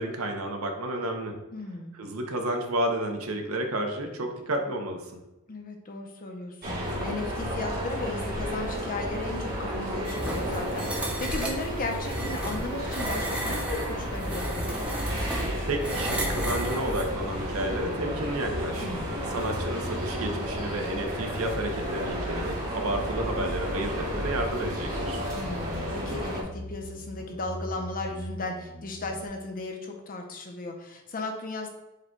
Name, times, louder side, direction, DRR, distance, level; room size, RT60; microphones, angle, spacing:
voice 1, 0.0-1.4 2.0-5.2 15.7-18.9 19.3-25.2, right 1 dB, 75° right, 4 dB, 0.7 m, -31 dB
voice 2, 1.5-2.0 5.5-14.9 18.8-19.2 25.3-31.7, left 2 dB, 40° left, 3 dB, 0.6 m, -36 dB
sound 1, 6.6-26.4, equal, 45° right, 1.2 m, -32 dB
sound 2, 10.0-17.1, right 1 dB, 5° right, 0.7 m, -34 dB
sound 3, 13.3-29.3, equal, 60° left, 1.2 m, -40 dB
4.9 x 2.3 x 4.4 m, 0.99 s
head